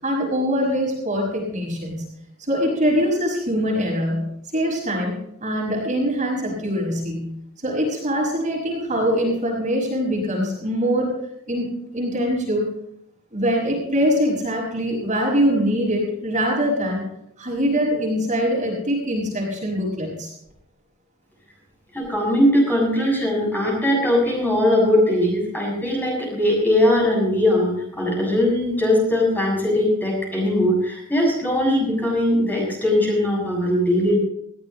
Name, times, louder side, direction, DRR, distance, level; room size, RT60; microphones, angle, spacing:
voice 1, 0.0-2.1 2.4-5.1 5.4-7.3 7.6-11.1 11.5-12.6 13.3-17.1 17.4-20.3, equal, 35° right, -1 dB, 5.7 m, -23 dB
voice 2, 21.9-34.2, left 1 dB, 10° left, -3 dB, 7.1 m, -20 dB
20.0 x 16.0 x 3.0 m, 0.75 s
head